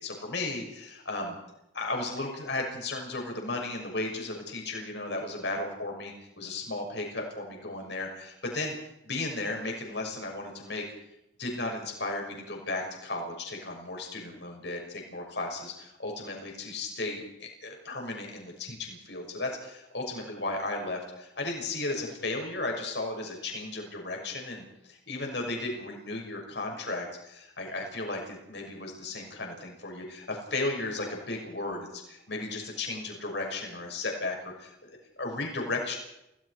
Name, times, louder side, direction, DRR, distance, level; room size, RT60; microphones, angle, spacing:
voice 1, 0.0-1.3 1.7-8.7 9.0-10.8 11.4-17.2 17.6-36.0, left 2 dB, 65° left, 1 dB, 6.3 m, -35 dB
29.0 x 18.5 x 4.9 m, 0.84 s
head